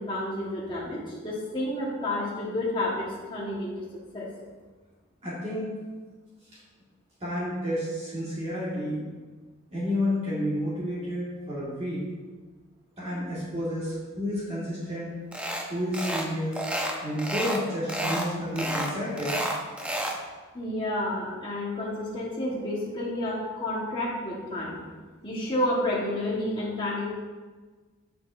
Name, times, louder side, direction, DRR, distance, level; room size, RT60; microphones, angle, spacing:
voice 1, 0.0-3.7 4.1-4.3 20.5-24.8 25.2-27.1, left 1 dB, 20° left, -6 dB, 1.3 m, -30 dB
voice 2, 5.2-5.7 7.2-9.0 9.7-12.0 13.0-15.1 15.7-16.6 17.0-19.4, equal, 30° right, -9 dB, 1.6 m, -30 dB
sound 1, 15.3-15.7 15.9-16.3 16.5-17.6 17.9-18.3 18.6-20.2, equal, 5° right, 0.5 m, -30 dB
7.7 x 6.7 x 2.5 m, 1.4 s
head